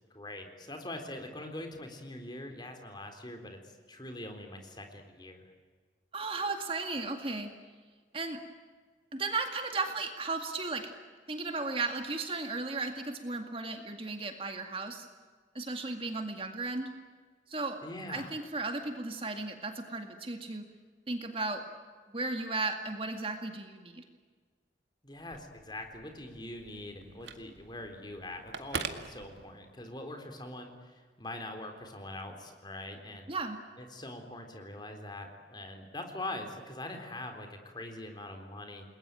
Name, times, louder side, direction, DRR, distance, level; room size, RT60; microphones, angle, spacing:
voice 1, 0.1-5.5 17.8-18.3 25.0-33.3 33.8-38.8, left 1 dB, 25° left, 5 dB, 3.9 m, -43 dB
voice 2, 6.1-7.5 8.1-8.4 9.1-10.9 11.3-15.1 15.5-16.9 17.5-17.8 18.1-20.6 21.1-21.6 22.1-24.0 33.3-33.6, right 3 dB, 30° right, 5 dB, 2.1 m, -35 dB
Telephone, 25.1-29.9, right 5 dB, 75° right, 2.0 m, -44 dB
29.0 x 21.5 x 9.1 m, 1.5 s
head